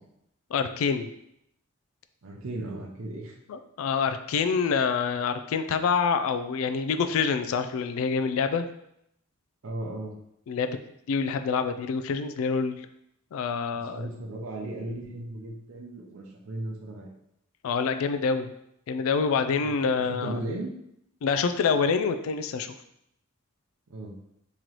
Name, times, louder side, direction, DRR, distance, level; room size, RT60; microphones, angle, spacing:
voice 1, 0.5-1.1 3.5-8.7 10.5-10.8 11.1-12.8 13.3-14.1 17.6-18.5 18.9-20.4 21.2-22.7, left 5 dB, 80° left, 9 dB, 0.3 m, -26 dB
voice 2, 2.2-3.3 9.6-10.1 13.9-17.1 19.6-20.7 23.9-24.1, right 2 dB, 75° right, -1 dB, 0.6 m, -36 dB
3.1 x 3.0 x 3.9 m, 0.77 s
head